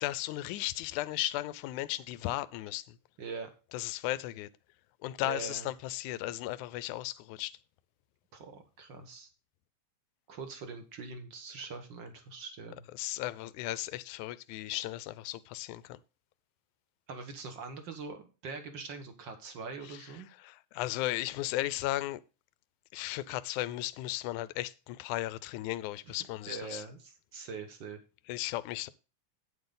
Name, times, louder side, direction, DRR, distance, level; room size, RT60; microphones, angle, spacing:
voice 1, 0.0-3.0 3.7-4.5 5.0-7.6 13.0-16.0 19.8-20.1 20.4-22.2 22.9-26.8 28.3-28.9, left 16 dB, 80° left, 1.8 m, -35 dB
voice 2, 3.2-3.5 5.2-5.7 8.3-9.3 10.3-12.9 17.1-20.3 26.1-26.2 26.5-28.0, right 4 dB, 50° right, 1.5 m, -43 dB
9.6 x 8.0 x 3.8 m
omnidirectional pair, 3.9 m